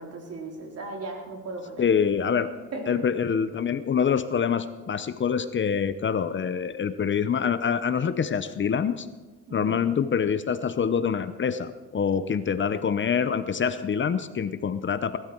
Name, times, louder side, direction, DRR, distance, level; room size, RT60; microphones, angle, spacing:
voice 1, 0.0-1.9 2.7-3.0 9.5-9.8, right 2 dB, 55° right, 1 dB, 3.5 m, -37 dB
voice 2, 1.8-2.5 2.9-9.1 9.5-15.2, left 7 dB, 40° left, 12 dB, 0.8 m, -25 dB
19.0 x 12.5 x 4.6 m, 1.2 s
cardioid pair, 90°, 30 cm